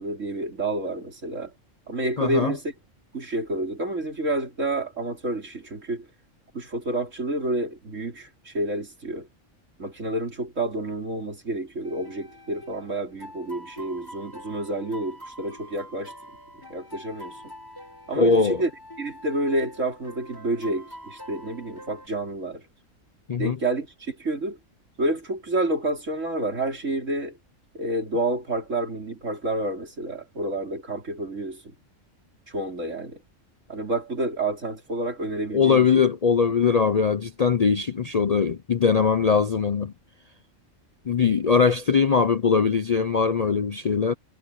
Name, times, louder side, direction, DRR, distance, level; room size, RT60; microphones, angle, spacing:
voice 1, 0.0-1.5 1.9-2.7 3.1-6.1 6.5-9.3 9.8-16.1 16.7-17.5 18.1-18.7 19.0-22.6 23.4-24.6 25.0-27.4 27.7-31.7 32.5-33.2 33.7-36.0, right 2 dB, 65° right, 4.4 m, -29 dB
voice 2, 2.2-2.5 18.2-18.6 23.3-23.6 35.5-39.9 41.1-44.1, left 5 dB, 40° left, 0.6 m, -21 dB
sound 1, 11.8-22.1, equal, 15° left, 6.5 m, -45 dB
omnidirectional pair, 1.4 m